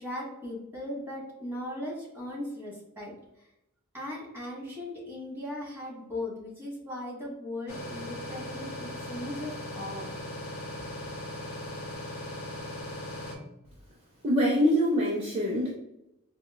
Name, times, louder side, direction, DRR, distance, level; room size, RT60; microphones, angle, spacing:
voice 1, 0.0-3.1 3.9-10.1, left 1 dB, 10° right, -5 dB, 1.2 m, -38 dB
sound 1, 7.7-13.4, left 1 dB, 75° left, 0.7 m, -38 dB
voice 2, 14.2-15.7, equal, 30° right, -4 dB, 0.5 m, -24 dB
4.1 x 2.1 x 2.2 m, 0.86 s
head